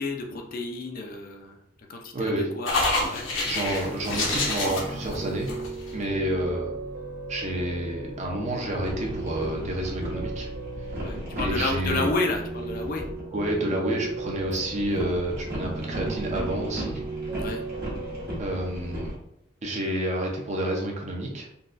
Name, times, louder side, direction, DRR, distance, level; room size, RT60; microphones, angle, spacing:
voice 1, 0.0-1.6 1.9-2.7 3.1-3.3 11.0-13.1 14.5-14.6 14.9-15.0 17.4-17.6, left 2 dB, 50° left, 3 dB, 0.4 m, -31 dB
voice 2, 2.1-2.5 3.4-5.5 5.9-6.7 7.3-10.5 11.4-12.1 13.3-17.0 18.4-19.1 19.6-21.5, right 1 dB, 40° right, 0 dB, 0.7 m, -29 dB
sound 1, 2.6-6.0, left 2 dB, 80° left, 1.0 m, -27 dB
Piano, 4.7-19.1, right 3 dB, 70° right, 1.3 m, -37 dB
sound 2, 7.5-13.7 14.0-19.2, equal, 55° right, 1.2 m, -37 dB
3.9 x 2.3 x 2.5 m, 0.78 s
head